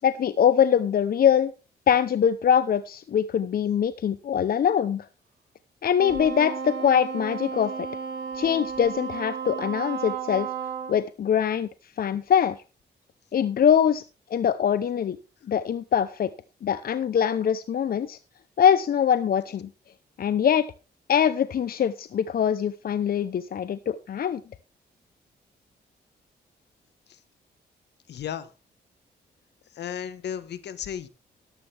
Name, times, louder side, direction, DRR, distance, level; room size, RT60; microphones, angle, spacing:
voice 1, 0.0-1.5 1.9-5.1 5.8-7.7 8.3-10.5 10.9-11.7 12.0-12.6 13.3-14.0 14.3-15.2 15.5-16.3 16.6-18.2 18.6-19.7 20.2-20.6 21.1-24.4, left 8 dB, 60° left, 13 dB, 0.7 m, -23 dB
Wind instrument woodwind instrument, 6.0-11.0, right 6 dB, 85° right, 3.4 m, -33 dB
voice 2, 28.1-28.5 29.7-31.1, left 9 dB, 80° left, 14 dB, 1.3 m, -34 dB
12.5 x 12.0 x 3.4 m, 0.31 s
cardioid pair, 75°, 17 cm